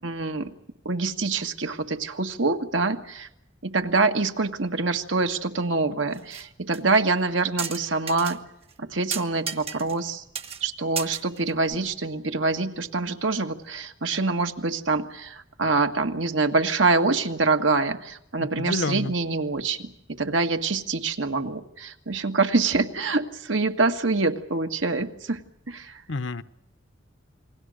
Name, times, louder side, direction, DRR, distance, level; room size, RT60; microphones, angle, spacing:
voice 1, 0.0-0.5 0.8-3.3 3.6-8.4 8.8-10.2 10.6-25.4 25.7-26.0, right 3 dB, 80° right, 6 dB, 1.8 m, -25 dB
sound 1, 6.1-6.5 6.7-6.8 7.6-8.4 8.7-8.8 9.1-10.1 10.4-10.6 11.0-11.8, right 6 dB, 30° right, 1.2 m, -33 dB
voice 2, 18.4-19.1 26.1-26.4, left 3 dB, 65° left, 13 dB, 0.9 m, -29 dB
29.0 x 21.0 x 6.5 m, 0.78 s
head